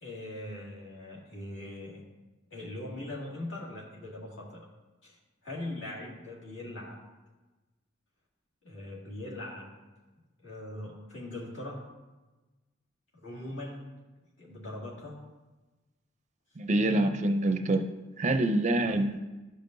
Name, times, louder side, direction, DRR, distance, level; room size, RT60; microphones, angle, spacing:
voice 1, 0.0-2.0 2.5-4.6 5.0-5.2 5.4-7.0 8.6-9.8 10.4-11.8 13.2-13.9 14.4-15.2, left 1 dB, 70° left, -5 dB, 2.2 m, -41 dB
voice 2, 16.6-17.9 18.2-19.2, right 1 dB, 35° right, 6 dB, 0.4 m, -26 dB
12.0 x 5.3 x 2.6 m, 1.2 s
head